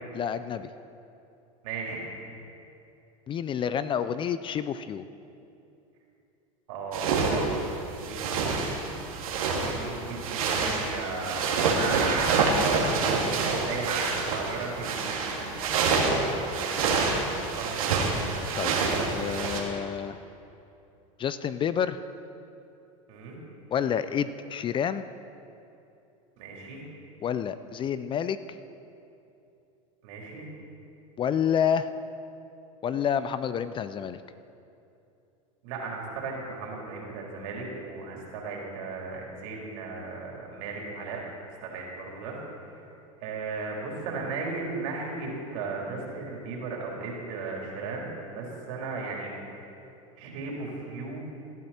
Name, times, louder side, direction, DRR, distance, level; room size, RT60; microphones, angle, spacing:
voice 1, 0.1-0.7 3.3-5.0 18.6-18.8 19.1-20.2 21.2-22.0 23.7-25.0 27.2-28.6 31.2-31.9 32.8-34.2, left 8 dB, 30° left, 13 dB, 0.5 m, -29 dB
voice 2, 1.6-2.0 6.7-7.7 8.0-8.8 9.5-17.0 17.4-18.0 23.1-23.4 26.4-26.8 30.0-30.5 35.6-41.2 41.6-42.4 43.2-49.3 50.2-51.2, right 4 dB, 70° right, -2 dB, 3.7 m, -36 dB
sound 1, 6.9-19.6, right 4 dB, 85° right, 2.1 m, -27 dB
18.0 x 12.0 x 4.3 m, 2.7 s
supercardioid pair, 110°, 18 cm